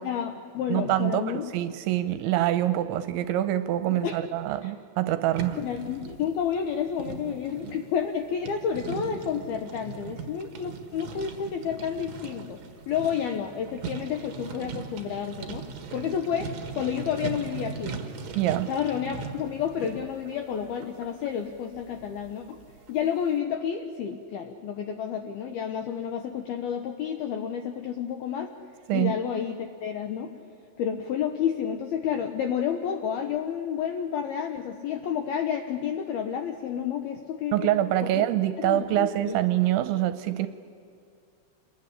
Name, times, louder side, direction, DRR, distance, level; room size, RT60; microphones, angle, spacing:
voice 1, 0.0-1.5 3.9-4.2 4.6-4.7 5.6-12.6 12.9-18.0 18.7-22.6 22.9-28.5 28.9-30.3 30.8-38.3 38.6-39.4, left 8 dB, 80° left, 6 dB, 2.3 m, -30 dB
voice 2, 0.7-5.6 18.4-18.7 28.9-29.1 37.5-40.5, right 13 dB, 80° right, 11 dB, 2.8 m, -25 dB
sound 1, 5.3-23.0, right 5 dB, 60° right, 1.8 m, -40 dB
27.0 x 21.0 x 9.9 m, 2.4 s
omnidirectional pair, 5.8 m